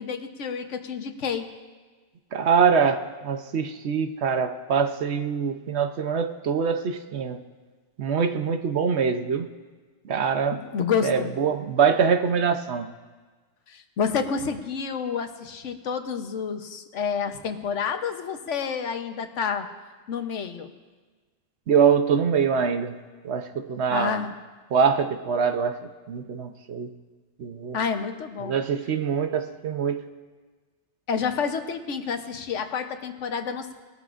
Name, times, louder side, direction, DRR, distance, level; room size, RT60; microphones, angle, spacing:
voice 1, 0.0-1.5 10.5-11.3 13.7-19.7 20.1-20.7 23.9-24.3 27.7-28.5 31.1-33.7, left 6 dB, 80° left, 7 dB, 1.2 m, -29 dB
voice 2, 2.3-7.4 8.0-9.5 10.0-10.6 11.0-12.9 21.7-23.0 23.2-24.2 24.7-25.7 26.1-26.9 27.4-27.8 28.4-30.0, right 6 dB, 65° right, 7 dB, 1.0 m, -24 dB
20.5 x 13.0 x 2.5 m, 1.4 s
omnidirectional pair, 1.2 m